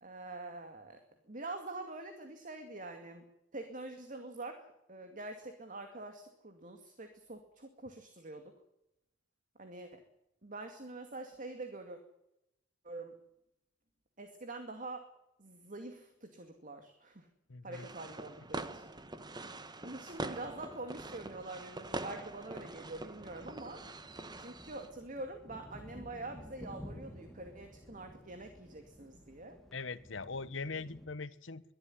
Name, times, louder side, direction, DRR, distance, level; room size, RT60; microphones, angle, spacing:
voice 1, 0.0-1.0 1.3-3.2 3.5-8.5 9.6-10.0 10.4-12.0 12.8-13.1 14.2-15.1 15.4-17.3 17.6-18.8 19.8-23.8 24.4-29.6, right 2 dB, 45° right, 6 dB, 2.4 m, -45 dB
voice 2, 17.5-17.9 29.7-31.6, left 4 dB, 80° left, 16 dB, 1.1 m, -41 dB
sound 1, 17.7-24.9, right 2 dB, 25° right, 1.3 m, -44 dB
sound 2, 20.4-31.1, equal, ahead, 2.6 m, -54 dB
23.0 x 13.0 x 9.9 m, 0.86 s
head